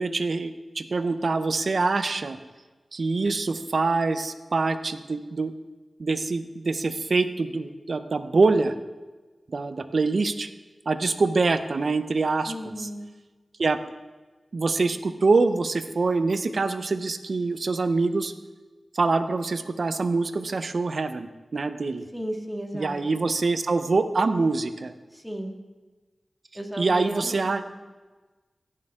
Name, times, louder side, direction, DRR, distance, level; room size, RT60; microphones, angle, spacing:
voice 1, 0.0-2.4 2.9-5.5 6.0-8.7 9.5-10.5 10.9-12.9 13.6-13.8 14.5-18.3 18.9-22.1 22.7-24.9 26.8-27.6, right 3 dB, 70° right, 10 dB, 0.7 m, -25 dB
voice 2, 12.5-13.1 22.1-23.0 25.1-25.6 26.5-27.7, equal, 5° right, 1 dB, 2.1 m, -34 dB
17.0 x 6.6 x 3.7 m, 1.3 s
cardioid pair, 40°, 0 cm